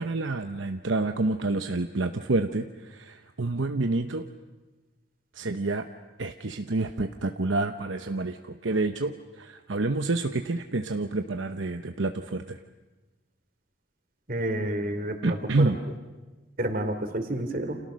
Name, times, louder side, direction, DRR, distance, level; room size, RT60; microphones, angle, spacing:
voice 1, 0.0-4.2 5.3-5.9 6.2-12.6 15.2-15.8, right 2 dB, 70° right, 7 dB, 0.9 m, -28 dB
voice 2, 14.3-15.7 16.6-17.8, right 1 dB, 45° right, 7 dB, 3.0 m, -29 dB
30.0 x 28.0 x 6.4 m, 1.2 s
head